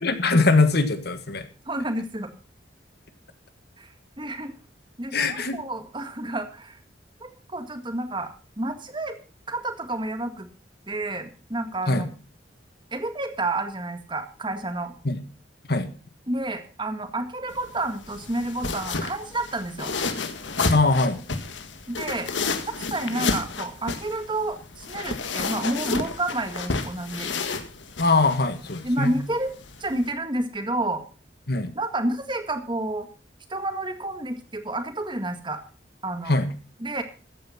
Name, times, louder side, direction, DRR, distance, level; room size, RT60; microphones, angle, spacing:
voice 1, 0.0-1.4 5.1-5.6 11.9-12.1 15.0-15.2 15.7-15.9 20.7-21.2 28.0-29.1 31.5-31.7 36.3-36.5, left 3 dB, 60° left, 9 dB, 1.6 m, -22 dB
voice 2, 1.7-2.3 3.8-3.9 4.2-4.5 5.0-6.8 7.2-8.3 8.6-9.2 9.5-10.5 10.9-12.1 12.9-14.9 16.3-19.9 21.9-22.3 22.9-27.3 28.8-29.5 29.8-31.0 31.7-33.1 33.5-35.6 36.0-36.3 36.8-37.0, right 2 dB, 25° right, 7 dB, 1.9 m, -30 dB
sound 1, 17.5-30.1, left 4 dB, 85° left, 1.7 m, -31 dB
14.5 x 9.3 x 5.9 m, 0.37 s
head